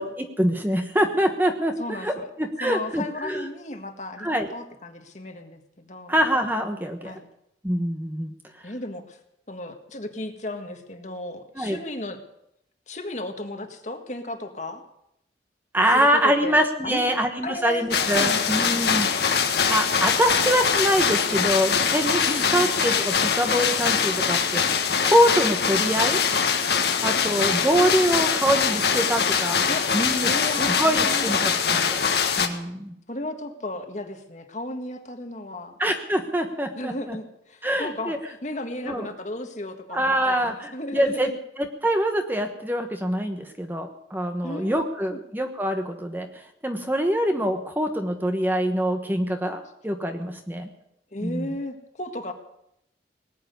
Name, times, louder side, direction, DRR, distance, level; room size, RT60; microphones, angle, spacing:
voice 1, 0.0-3.5 4.2-4.5 6.1-7.2 7.6-8.3 11.6-11.8 15.7-19.1 19.4-26.2 27.0-29.6 29.9-30.3 30.6-32.0 32.4-32.9 35.8-37.2 37.6-38.2 38.9-39.1 39.9-41.3 41.6-46.3 46.6-50.7 51.2-51.5, equal, 10° right, 5 dB, 1.1 m, -24 dB
voice 2, 1.8-2.3 2.6-6.1 7.0-7.3 8.6-9.2 9.5-12.2 12.9-14.8 15.9-16.6 16.8-17.2 17.4-18.9 22.3-22.7 29.7-29.9 30.2-31.4 33.1-35.8 36.8-41.4 44.4-45.2 51.1-52.3, left 1 dB, 40° left, 6 dB, 1.7 m, -35 dB
sound 1, 17.9-32.5, left 6 dB, 60° left, 1.5 m, -23 dB
19.0 x 7.7 x 9.4 m, 0.79 s
head